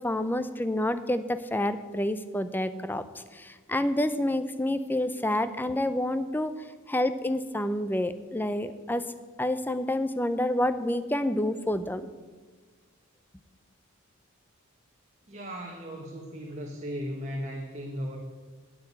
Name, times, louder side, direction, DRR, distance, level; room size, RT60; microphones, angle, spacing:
voice 1, 0.0-6.5 6.9-9.0 9.4-12.1, left 1 dB, 10° left, 12 dB, 0.5 m, -28 dB
voice 2, 15.3-18.2, equal, 30° right, 0 dB, 1.2 m, -36 dB
8.8 x 8.7 x 8.6 m, 1.4 s
head